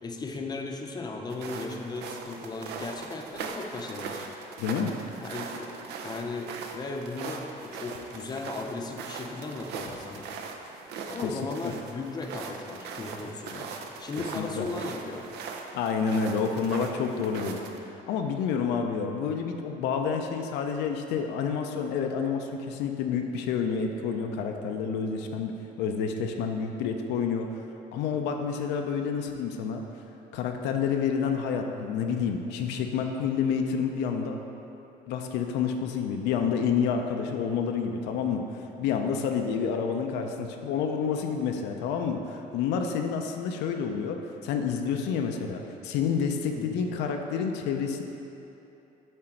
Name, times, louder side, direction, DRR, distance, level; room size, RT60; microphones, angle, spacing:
voice 1, 0.0-4.2 5.2-10.3 11.0-13.7 14.0-15.3 46.5-46.8, left 3 dB, 25° left, 2 dB, 0.6 m, -36 dB
sound 1, 1.3-17.8, right 5 dB, 80° right, 0.6 m, -40 dB
voice 2, 4.6-4.9 11.2-11.3 14.3-14.7 15.7-17.6 18.1-25.5 25.8-27.5 27.9-29.8 30.3-34.4 35.1-38.4 38.8-48.0, left 6 dB, 85° left, 4 dB, 0.5 m, -29 dB
7.6 x 3.8 x 4.5 m, 3.0 s
cardioid pair, 110°, 17 cm